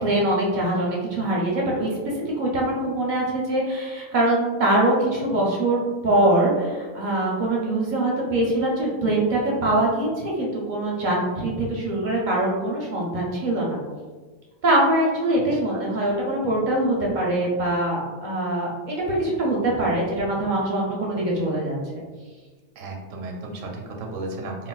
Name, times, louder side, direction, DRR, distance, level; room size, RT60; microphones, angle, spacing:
voice 1, 0.0-13.8 14.6-21.8, right 1 dB, 50° right, -3 dB, 0.6 m, -23 dB
voice 2, 15.3-15.8 22.8-24.7, right 2 dB, 80° right, 1 dB, 1.0 m, -35 dB
3.9 x 2.1 x 2.3 m, 1.4 s
omnidirectional pair, 1.4 m